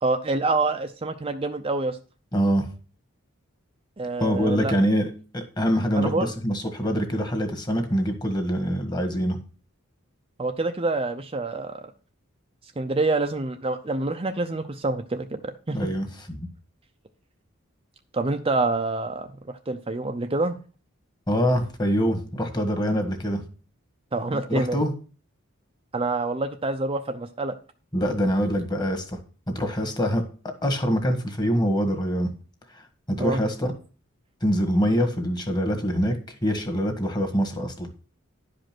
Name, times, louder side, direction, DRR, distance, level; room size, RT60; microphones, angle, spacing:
voice 1, 0.0-2.0 4.0-4.7 6.0-6.3 10.4-11.9 12.8-15.9 18.1-20.6 24.1-24.8 25.9-27.5 33.2-33.4, right 3 dB, 25° right, 6 dB, 0.6 m, -27 dB
voice 2, 2.3-2.7 4.2-9.4 15.7-16.5 21.3-23.4 24.3-24.9 27.9-29.2 29.5-32.3 32.7-33.7 34.4-37.9, equal, 20° left, 6 dB, 1.6 m, -25 dB
11.0 x 5.2 x 6.0 m, 0.38 s
head